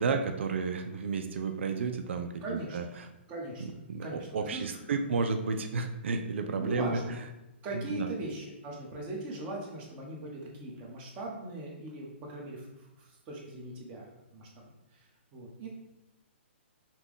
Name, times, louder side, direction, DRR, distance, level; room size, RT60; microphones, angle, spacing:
voice 1, 0.0-2.3 2.7-2.8 3.9-7.0 7.9-8.1, right 4 dB, 75° right, 6 dB, 0.5 m, -31 dB
voice 2, 2.4-2.8 3.3-4.7 6.6-7.2 7.6-15.7, right 1 dB, 25° right, -2 dB, 1.2 m, -40 dB
5.8 x 2.4 x 3.7 m, 0.97 s
hypercardioid pair, 150°, 7 cm